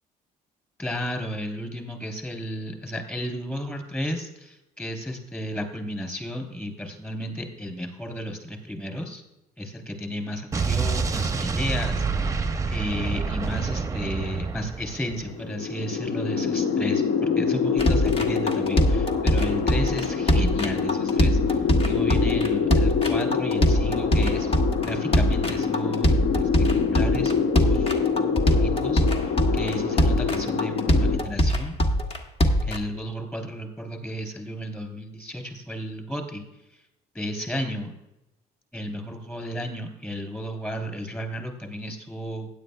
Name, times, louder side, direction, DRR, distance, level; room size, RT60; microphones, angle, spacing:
voice 1, 0.8-9.2 9.6-12.4 12.7-24.5 24.8-26.5 26.9-31.8 32.6-36.5 37.1-37.9 38.7-42.5, equal, 10° left, 4 dB, 3.1 m, -33 dB
Explosion, 10.5-15.3, right 4 dB, 20° right, 0.7 m, -27 dB
sound 1, 15.2-31.2, left 6 dB, 70° left, 1.0 m, -25 dB
sound 2, 17.8-32.8, equal, 35° left, 1.3 m, -22 dB
15.5 x 10.0 x 2.2 m, 0.91 s
cardioid pair, 110°, 17 cm